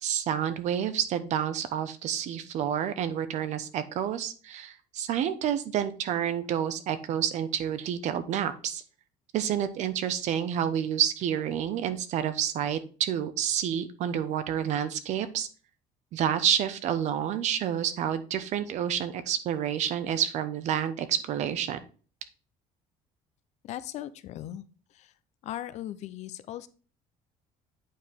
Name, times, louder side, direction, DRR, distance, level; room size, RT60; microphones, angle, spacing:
voice 1, 0.0-8.8 9.3-15.5 16.1-21.8, right 9 dB, 55° right, 12 dB, 0.8 m, -29 dB
voice 2, 23.6-24.6 24.9-25.1 25.4-26.7, left 12 dB, 55° left, 14 dB, 0.6 m, -38 dB
8.5 x 4.8 x 3.6 m, 0.38 s
cardioid pair, 155°, 14 cm